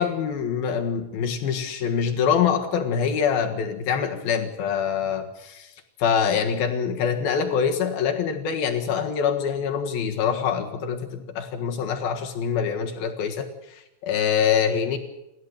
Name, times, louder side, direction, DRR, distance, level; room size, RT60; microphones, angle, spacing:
voice 1, 0.0-5.7 6.0-15.0, left 7 dB, 60° left, 4 dB, 2.8 m, -25 dB
29.0 x 13.5 x 8.1 m, 0.90 s
omnidirectional pair, 6.0 m